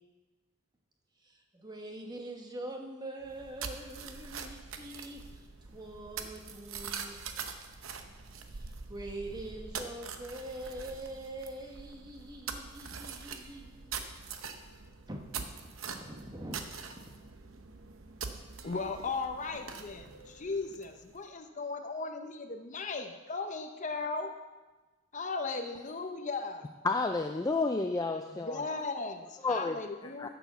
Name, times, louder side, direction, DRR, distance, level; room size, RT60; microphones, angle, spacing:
voice 1, 1.2-7.2 8.5-14.4 15.1-16.7, right 1 dB, 20° right, 2 dB, 1.1 m, -44 dB
sound 1, 3.2-21.2, right 5 dB, 70° right, 0.8 m, -44 dB
voice 2, 18.6-24.3 25.1-26.7 28.4-30.3, left 3 dB, 35° left, 6 dB, 0.7 m, -37 dB
voice 3, 26.8-28.6 29.4-29.8 30.2-30.3, left 3 dB, 15° left, 6 dB, 0.3 m, -30 dB
10.5 x 7.0 x 6.8 m, 1.2 s
head